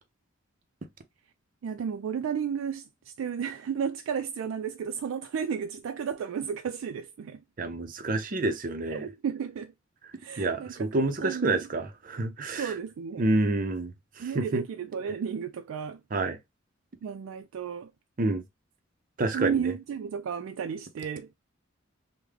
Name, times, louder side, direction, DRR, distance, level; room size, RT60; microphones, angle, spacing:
voice 1, 1.6-7.4 8.9-9.7 10.2-11.7 12.4-13.3 14.2-16.0 17.0-17.9 19.3-21.3, right 7 dB, 90° right, 0.3 m, -33 dB
voice 2, 7.6-9.1 10.4-12.7 13.2-13.9 14.2-14.6 16.1-16.4 18.2-18.4 19.2-19.7, right 2 dB, 45° right, 0.5 m, -28 dB
3.5 x 2.1 x 3.2 m
head